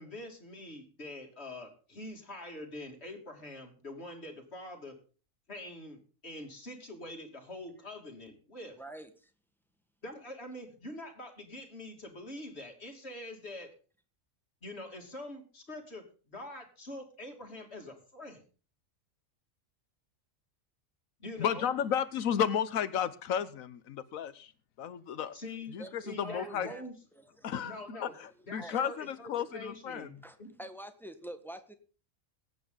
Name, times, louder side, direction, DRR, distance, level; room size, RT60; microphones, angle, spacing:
voice 1, 0.0-5.0 5.5-8.8 10.0-13.8 14.6-18.4 21.2-21.7 25.3-26.9 27.6-28.1 28.5-30.5, left 1 dB, 50° left, 3 dB, 3.2 m, -45 dB
voice 2, 8.8-9.3 25.8-26.8 27.1-27.8 28.1-28.2 28.6-28.9 30.2-31.7, right 1 dB, ahead, 8 dB, 1.5 m, -46 dB
voice 3, 21.4-24.5 24.8-25.3 25.7-26.7 27.4-30.1, left 8 dB, 90° left, 14 dB, 1.3 m, -33 dB
22.0 x 9.0 x 3.9 m, 0.38 s
omnidirectional pair, 1.4 m